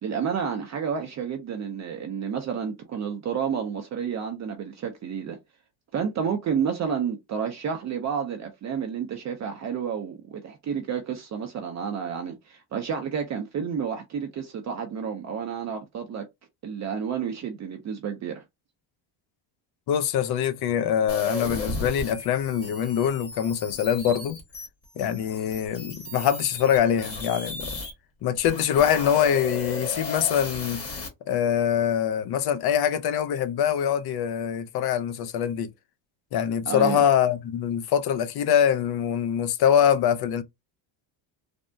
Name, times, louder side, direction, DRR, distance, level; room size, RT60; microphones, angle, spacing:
voice 1, 0.0-5.4 5.9-16.3 16.6-18.4 36.7-37.0, right 7 dB, 35° right, 0.5 m, -30 dB
voice 2, 19.9-24.4 25.0-27.8 28.2-30.8 31.2-35.7 36.3-40.4, left 9 dB, 50° left, 0.5 m, -24 dB
sound 1, 21.1-27.9 28.4-31.1, left 3 dB, 30° left, 1.2 m, -35 dB
3.4 x 2.0 x 2.6 m
cardioid pair, 125°, 49 cm